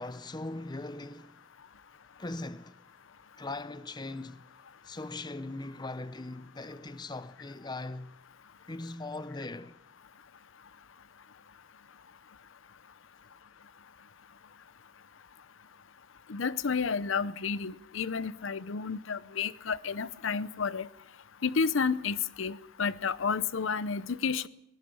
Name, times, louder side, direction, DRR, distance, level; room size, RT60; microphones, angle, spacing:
voice 1, 0.0-1.4 2.2-2.8 3.4-4.5 4.8-8.1 8.7-9.8, left 2 dB, 20° left, 0.7 m, -40 dB
voice 2, 16.3-20.9 21.4-24.5, left 5 dB, 75° left, 0.7 m, -31 dB
22.5 x 18.0 x 7.0 m
head